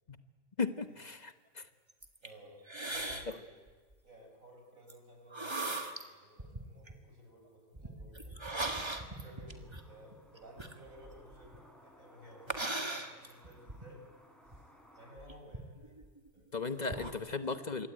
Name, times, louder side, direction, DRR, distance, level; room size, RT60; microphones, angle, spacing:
voice 1, 0.6-1.7 16.5-17.9, left 4 dB, 35° left, 9 dB, 1.1 m, -36 dB
sound 1, 1.9-2.3 2.7-3.3 3.7-3.9 4.9-5.0 5.3-6.0 6.4-6.9 7.7-11.6 12.5-13.8 14.5-14.6 15.2-16.4 16.8-17.1, right 2 dB, 20° right, 1.8 m, -39 dB
voice 2, 2.2-3.5 4.0-8.4 9.1-14.1 14.5-14.6 14.9-16.0 16.3-16.5 17.1-17.8, equal, 70° right, 2 dB, 6.5 m, -56 dB
sound 2, 9.4-15.1, equal, ahead, 4.5 m, -61 dB
26.5 x 22.5 x 9.0 m, 1.5 s
omnidirectional pair, 1.5 m